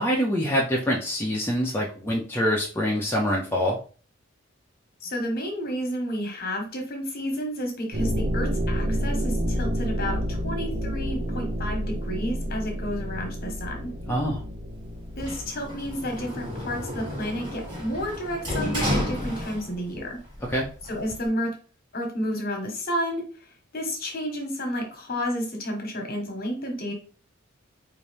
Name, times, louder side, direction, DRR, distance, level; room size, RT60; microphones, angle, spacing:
voice 1, 0.0-3.8 14.1-14.4 20.5-20.7, equal, 10° left, -3 dB, 0.5 m, -25 dB
voice 2, 5.0-13.9 15.2-20.2 20.9-21.5 21.9-23.2 23.7-26.9, equal, 50° left, 2 dB, 1.1 m, -31 dB
sound 1, 7.9-17.4, equal, 45° right, 0.8 m, -29 dB
Sliding door, 15.2-20.0 20.3-21.3, left 1 dB, 20° right, 1.7 m, -31 dB
4.1 x 2.6 x 3.3 m, 0.40 s
head